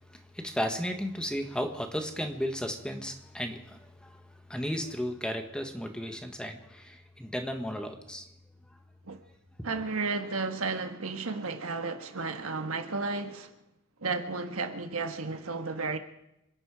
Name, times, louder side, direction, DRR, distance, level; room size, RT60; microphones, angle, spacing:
voice 1, 0.3-4.1 4.5-8.2, equal, 5° left, 1.6 m, -34 dB
voice 2, 9.6-13.5 14.0-16.0, right 4 dB, 75° right, 1.6 m, -33 dB
27.5 x 11.0 x 4.9 m
head